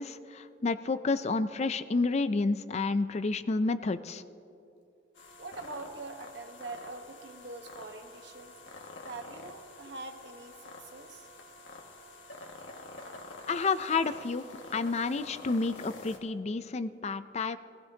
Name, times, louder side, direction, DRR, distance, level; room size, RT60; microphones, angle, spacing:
voice 1, 0.0-4.2 13.5-14.4 14.7-17.6, left 3 dB, 35° left, 13 dB, 0.4 m, -30 dB
sound 1, 5.1-16.2, left 2 dB, 85° left, 1.8 m, -48 dB
voice 2, 5.4-8.5 9.0-11.3, right 3 dB, 65° right, 6 dB, 1.2 m, -44 dB
22.5 x 15.5 x 2.8 m, 2.7 s
head